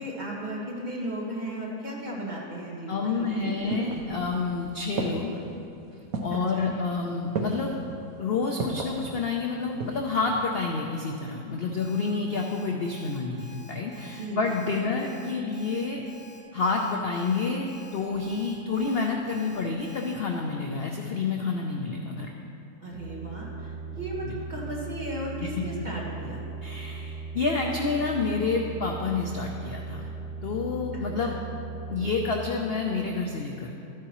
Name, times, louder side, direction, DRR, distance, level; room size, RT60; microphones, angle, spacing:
voice 1, 0.0-3.9 6.3-6.7 14.0-14.4 14.9-15.0 22.8-26.4 31.2-31.4, right 1 dB, 30° right, -4 dB, 1.6 m, -35 dB
voice 2, 2.9-5.4 6.2-7.8 8.2-16.0 16.5-22.3 24.2-24.4 25.4-25.5 26.6-30.1 30.4-31.4 31.9-33.7, left 4 dB, 60° left, 1 dB, 0.6 m, -29 dB
sound 1, 3.2-4.5 5.0-5.5 6.1-6.5 7.3-7.8 8.6-9.0 9.5-10.1 10.4-10.5, right 3 dB, 65° right, 1.2 m, -33 dB
Alarm, 11.8-20.1, right 1 dB, 85° left, 2.5 m, -51 dB
sound 2, 22.9-32.4, right 4 dB, 5° left, 1.8 m, -38 dB
13.0 x 9.4 x 3.0 m, 2.7 s
omnidirectional pair, 1.7 m